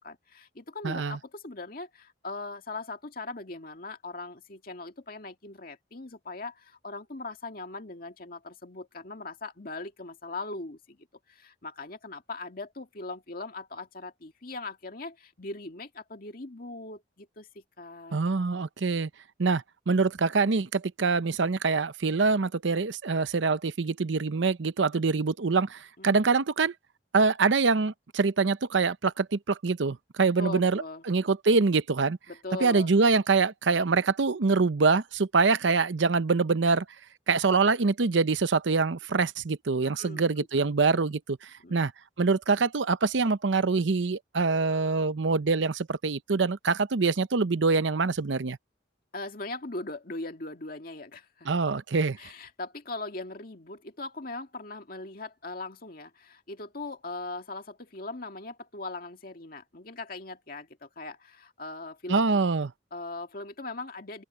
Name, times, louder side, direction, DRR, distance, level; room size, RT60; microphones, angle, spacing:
voice 1, 0.0-11.0 11.3-18.2 24.9-25.0 26.0-26.2 30.4-31.0 32.3-32.9 39.8-40.5 41.6-41.8 49.1-51.5 52.2-62.2 62.9-64.2, left 3 dB, 50° left, 2.0 m, -40 dB
voice 2, 0.8-1.2 18.1-19.1 19.4-26.7 27.1-30.8 31.1-32.2 32.6-36.8 37.3-41.4 41.7-41.9 42.2-48.6 51.5-52.2 62.1-62.7, right 4 dB, 80° right, 0.7 m, -25 dB
open air
head